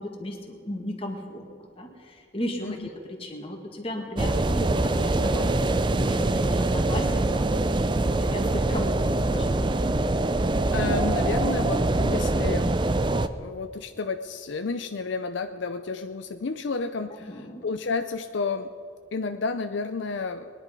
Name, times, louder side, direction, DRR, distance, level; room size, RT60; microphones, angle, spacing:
voice 1, 0.0-1.4 1.8-7.5 7.8-9.6 17.2-17.7, left 1 dB, 30° left, 2 dB, 1.9 m, -35 dB
sound 1, 4.2-13.3, right 2 dB, 25° right, 0.4 m, -24 dB
voice 2, 10.7-12.7 13.4-18.7 19.1-20.5, left 4 dB, 65° left, 8 dB, 0.5 m, -31 dB
21.0 x 11.0 x 5.3 m, 2.4 s
head